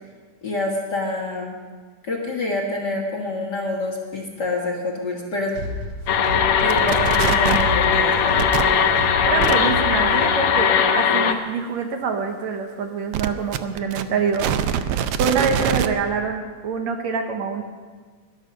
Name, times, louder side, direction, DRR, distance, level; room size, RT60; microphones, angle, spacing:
voice 1, 0.4-1.6 2.0-5.5 6.6-8.5, left 2 dB, 40° left, -1 dB, 1.8 m, -27 dB
sound 1, 5.5-10.6, equal, 30° right, 3.4 m, -31 dB
sound 2, 6.1-11.3, left 7 dB, 70° left, 1.4 m, -19 dB
sound 3, 6.7-7.7 8.4-8.6 9.4-9.5 13.1-15.9, right 10 dB, 90° right, 1.3 m, -24 dB
voice 2, 9.3-17.6, right 5 dB, 70° right, 4 dB, 2.2 m, -25 dB
19.5 x 12.0 x 5.3 m, 1.5 s
omnidirectional pair, 3.5 m